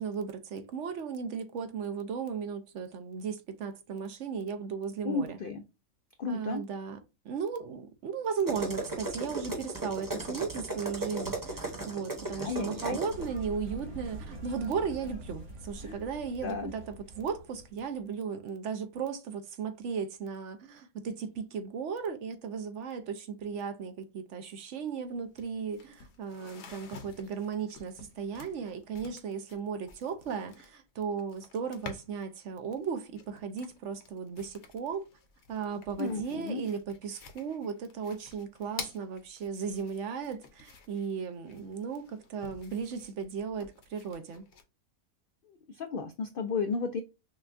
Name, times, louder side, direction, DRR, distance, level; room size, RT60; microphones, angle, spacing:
voice 1, 0.0-5.4 6.3-7.0 7.2-35.1 35.5-44.4, right 6 dB, 60° right, 0.9 m, -36 dB
voice 2, 5.0-5.6 6.2-6.6 12.3-13.0 15.8-16.0 16.4-16.7 36.0-36.7 45.5-47.0, left 4 dB, 80° left, 0.4 m, -33 dB
sound 1, 8.5-13.3, right 2 dB, 15° right, 1.0 m, -36 dB
Aeroplane (on the street with traffic and small crowd), 13.1-18.0, right 2 dB, 90° right, 2.1 m, -44 dB
sound 2, 24.9-25.0 25.2-32.3 32.7-44.6, left 5 dB, 55° left, 1.0 m, -50 dB
6.1 x 2.2 x 2.5 m
omnidirectional pair, 1.5 m